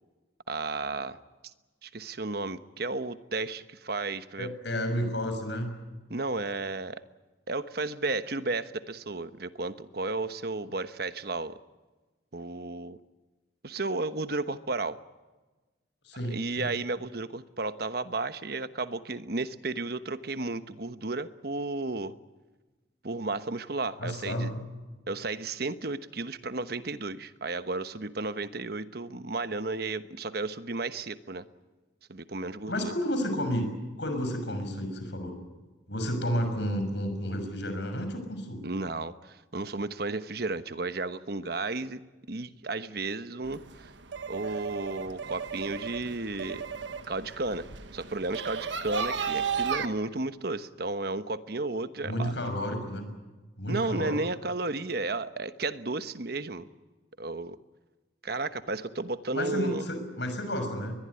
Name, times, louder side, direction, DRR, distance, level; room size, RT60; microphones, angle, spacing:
voice 1, 0.5-1.2 1.8-4.5 6.1-7.0 7.5-11.6 12.3-13.0 13.6-15.0 16.3-22.1 23.0-24.5 25.1-31.4 32.1-32.9 38.6-42.0 42.3-43.9 44.3-46.7 47.1-47.7 47.9-52.3 53.7-56.7 57.2-57.6 58.2-59.9, right 3 dB, 55° right, 11 dB, 1.1 m, -33 dB
voice 2, 4.4-5.7 16.0-16.7 24.0-24.6 32.7-33.7 34.0-35.3 35.9-38.6 52.0-53.1 53.6-54.2 59.3-60.9, equal, 70° left, 7 dB, 6.1 m, -31 dB
sound 1, 43.4-49.9, right 6 dB, 80° right, 1.4 m, -35 dB
22.0 x 21.5 x 9.8 m, 1.2 s
head